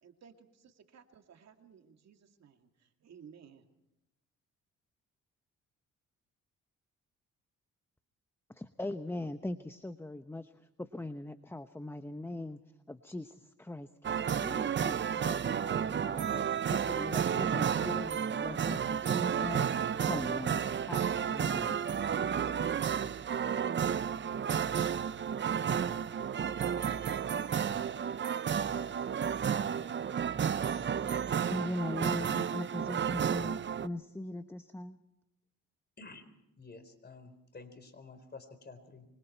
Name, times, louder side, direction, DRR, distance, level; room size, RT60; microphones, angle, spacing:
voice 1, 0.0-3.6, right 7 dB, 60° right, 5 dB, 2.5 m, -57 dB
voice 2, 8.5-10.5 10.8-12.6 12.9-16.4 16.7-19.7 20.0-21.8 31.5-35.0, left 1 dB, 10° left, 10 dB, 0.9 m, -40 dB
sound 1, 14.0-33.9, right 8 dB, 40° right, 0.7 m, -32 dB
Growling, 17.0-22.9, left 6 dB, 70° left, 3.2 m, -58 dB
voice 3, 36.6-39.1, left 3 dB, 35° left, 9 dB, 4.3 m, -50 dB
25.5 x 24.5 x 4.5 m, 0.89 s
cardioid pair, 90°, 30 cm